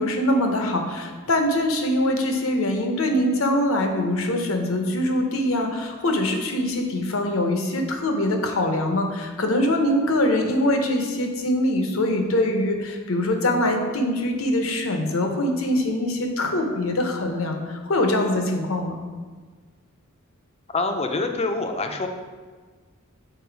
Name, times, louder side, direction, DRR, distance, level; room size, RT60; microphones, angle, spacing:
voice 1, 0.0-19.0, left 1 dB, 70° left, 4 dB, 0.9 m, -23 dB
voice 2, 20.7-22.1, left 3 dB, 30° left, 5 dB, 0.6 m, -25 dB
7.0 x 4.2 x 4.6 m, 1.5 s
head